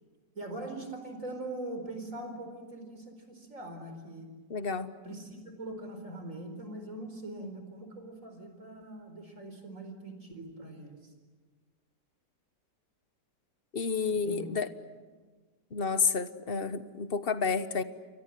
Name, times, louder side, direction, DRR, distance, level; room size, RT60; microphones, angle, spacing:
voice 1, 0.3-4.3 5.0-11.0 14.1-14.5, right 2 dB, 50° right, 6 dB, 4.8 m, -42 dB
voice 2, 4.5-4.9 7.4-7.5 13.7-14.7 15.7-17.8, left 5 dB, 40° left, 12 dB, 1.2 m, -30 dB
28.5 x 24.0 x 7.6 m, 1.4 s
omnidirectional pair, 1.8 m